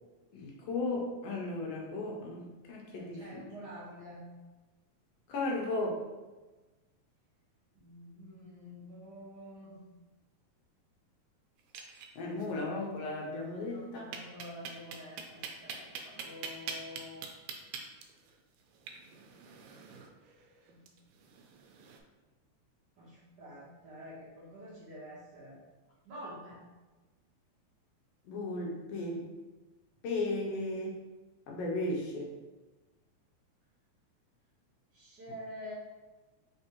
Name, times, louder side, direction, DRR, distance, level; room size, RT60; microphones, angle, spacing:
voice 1, 0.3-3.4 5.3-6.0 12.1-14.1 28.2-29.3 30.0-31.0 31.5-32.3, left 2 dB, 75° left, -2 dB, 1.6 m, -35 dB
voice 2, 2.9-4.2 7.7-9.8 13.6-17.2 20.7-20.8 23.0-25.6 26.0-26.6 34.9-35.7, equal, 60° right, -7 dB, 1.2 m, -48 dB
sound 1, 11.6-12.5 12.8-12.9 13.2-13.3 14.1-22.0, right 7 dB, 85° right, 2.0 m, -45 dB
4.5 x 3.4 x 2.9 m, 1.2 s
omnidirectional pair, 3.4 m